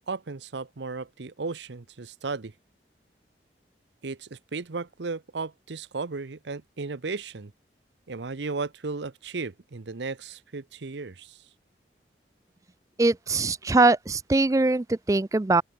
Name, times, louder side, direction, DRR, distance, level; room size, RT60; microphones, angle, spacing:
voice 1, 0.1-2.5 4.0-7.5 8.1-11.4, right 4 dB, 85° right, 0.8 m, -35 dB
voice 2, 13.0-15.6, right 2 dB, 20° right, 0.4 m, -22 dB
open air
head